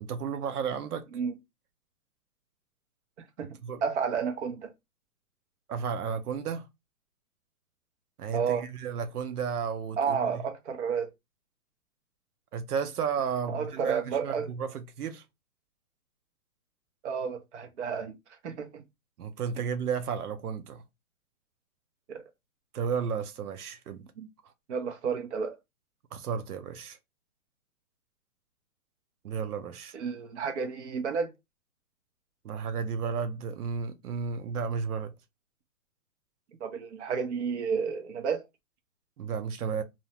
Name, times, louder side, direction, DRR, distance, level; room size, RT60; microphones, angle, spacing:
voice 1, 0.0-1.0 3.6-3.8 5.7-6.7 8.2-10.4 12.5-15.2 19.2-20.8 22.7-24.1 26.1-27.0 29.2-29.9 32.4-35.1 39.2-39.8, right 6 dB, 85° right, 0.7 m, -33 dB
voice 2, 3.8-4.7 8.3-8.7 10.0-11.1 13.5-14.5 17.0-18.1 18.4-18.8 22.1-22.2 24.2-24.3 24.7-25.6 29.9-31.3 36.6-38.4, right 6 dB, 50° right, 0.7 m, -31 dB
2.6 x 2.1 x 2.7 m
hypercardioid pair, 155°, 44 cm